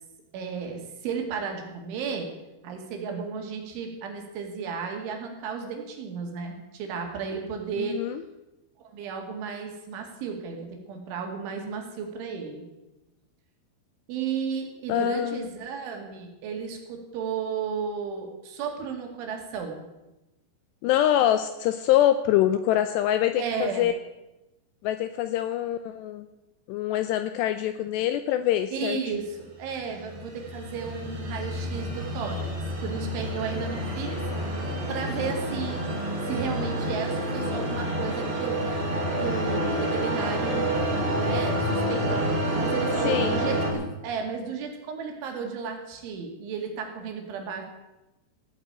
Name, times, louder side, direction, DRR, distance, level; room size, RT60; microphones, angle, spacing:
voice 1, 0.3-2.3 2.6-8.0 8.9-12.7 14.1-19.9 23.4-23.9 28.7-32.5 32.8-35.8 36.3-38.8 39.2-40.7 41.1-42.3 42.6-47.6, right 6 dB, 75° right, 3 dB, 4.7 m, -33 dB
voice 2, 7.8-8.2 14.9-15.5 20.8-23.9 24.8-26.3 26.7-29.0 34.2-34.4 43.0-43.4, left 12 dB, 80° left, 10 dB, 2.5 m, -25 dB
sound 1, 29.6-43.7, right 1 dB, 35° right, 4.7 m, -28 dB
16.0 x 9.1 x 8.8 m, 1.0 s
omnidirectional pair, 5.5 m